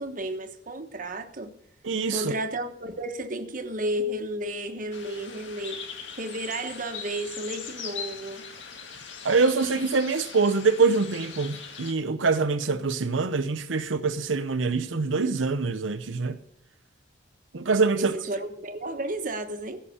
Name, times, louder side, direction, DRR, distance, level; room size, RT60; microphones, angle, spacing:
voice 1, 0.0-1.5 2.1-5.8 6.2-8.5 18.0-19.8, right 1 dB, 45° right, 1.2 m, -32 dB
voice 2, 1.8-2.3 9.2-16.4 17.5-18.2, right 4 dB, 90° right, 0.8 m, -24 dB
sound 1, 4.9-11.9, left 6 dB, 75° left, 1.8 m, -40 dB
16.0 x 5.8 x 8.4 m
head